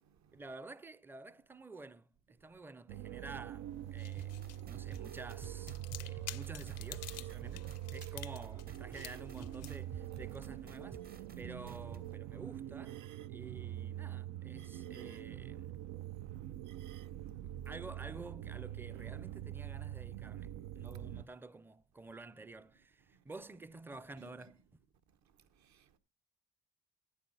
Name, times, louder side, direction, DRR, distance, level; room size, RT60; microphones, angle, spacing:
voice 1, 0.3-4.4 4.7-13.0 13.3-15.8 17.7-24.7, right 3 dB, 5° right, 0.4 m, -51 dB
sound 1, 2.9-21.2, right 13 dB, 90° right, 0.5 m, -44 dB
sound 2, 3.7-12.2, left 13 dB, 55° left, 0.5 m, -52 dB
sound 3, 4.2-12.0, right 4 dB, 30° right, 0.7 m, -52 dB
voice 2, 25.6-26.0, right 7 dB, 65° right, 1.1 m, -59 dB
10.5 x 9.0 x 3.9 m
cardioid pair, 90°, 30 cm